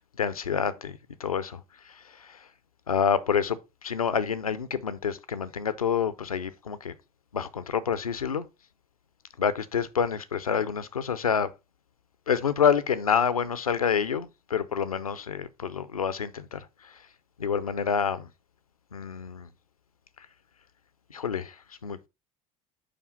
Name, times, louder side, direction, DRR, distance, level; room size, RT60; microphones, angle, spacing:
voice 1, 0.0-2.5 2.9-6.9 7.3-8.5 9.4-11.5 12.3-17.1 17.4-18.3 18.9-19.5 20.2-20.3 21.1-22.1, left 7 dB, 85° left, 0.5 m, -28 dB
5.1 x 4.9 x 5.3 m
figure-of-eight pair, 65°, 18 cm